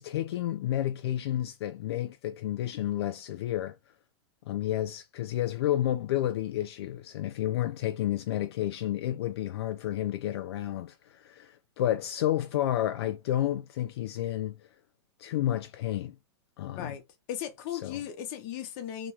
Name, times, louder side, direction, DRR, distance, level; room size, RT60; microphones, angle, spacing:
voice 1, 0.0-3.8 4.5-14.6 15.2-16.2 16.6-16.9 17.8-18.0, left 12 dB, 65° left, 0.4 m, -31 dB
voice 2, 17.3-19.1, left 10 dB, 35° left, 0.7 m, -36 dB
3.0 x 2.2 x 2.8 m
supercardioid pair, 160°, 15 cm